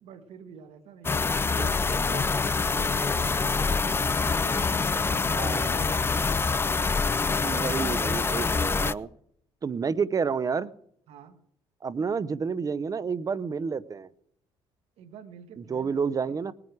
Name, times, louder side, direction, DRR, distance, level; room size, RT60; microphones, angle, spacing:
voice 1, 0.0-6.3 11.1-11.4 15.0-16.4, right 8 dB, 75° right, 1.5 m, -46 dB
sound 1, 1.0-8.9, left 4 dB, 20° left, 0.4 m, -25 dB
voice 2, 5.3-5.7 7.4-9.1 9.6-10.7 11.8-14.1 15.6-16.5, right 5 dB, 35° right, 0.8 m, -29 dB
19.5 x 9.8 x 4.7 m
cardioid pair, 90°, 11 cm